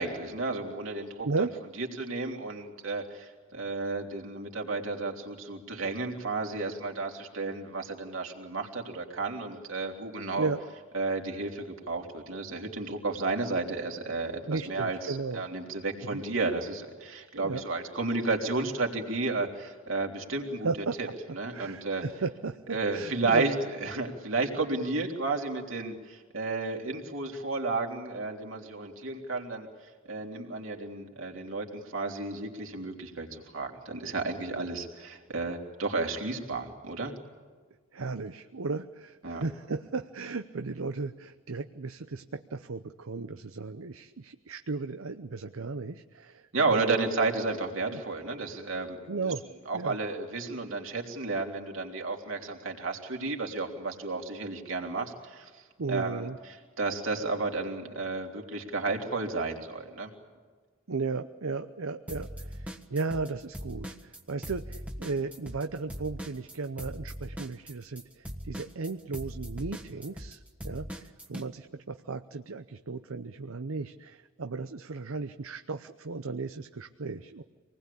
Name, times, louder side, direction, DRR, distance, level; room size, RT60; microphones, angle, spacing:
voice 1, 0.0-1.3 1.8-10.5 10.9-20.7 21.0-21.1 21.3-22.0 22.7-29.7 30.1-37.1 39.2-39.4 46.5-49.0 49.2-49.3 49.7-55.5 55.9-56.3 56.8-60.1, right 3 dB, 70° right, 1 dB, 3.5 m, -32 dB
voice 2, 1.2-1.5 10.4-10.6 14.5-15.5 16.0-16.2 17.3-17.6 20.6-21.1 21.5-23.4 37.9-46.9 47.9-48.0 49.1-49.4 49.7-50.0 55.8-56.4 60.9-77.4, right 4 dB, 90° right, 8 dB, 0.8 m, -35 dB
sound 1, 62.1-63.3 63.5-71.5, equal, 5° right, 1.4 m, -40 dB
26.5 x 20.0 x 8.5 m, 1.5 s
head